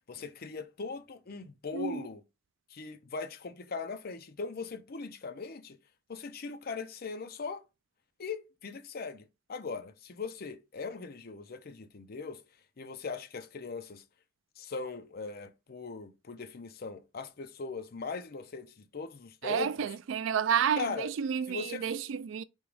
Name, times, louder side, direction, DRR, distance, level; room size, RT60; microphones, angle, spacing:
voice 1, 0.1-2.2 2.7-5.8 6.1-7.6 8.2-12.4 12.8-14.0 14.6-19.9 20.8-21.1 21.5-21.9, left 4 dB, 55° left, 0.6 m, -40 dB
voice 2, 19.4-22.4, right 8 dB, 85° right, 0.3 m, -30 dB
3.7 x 3.0 x 4.8 m
head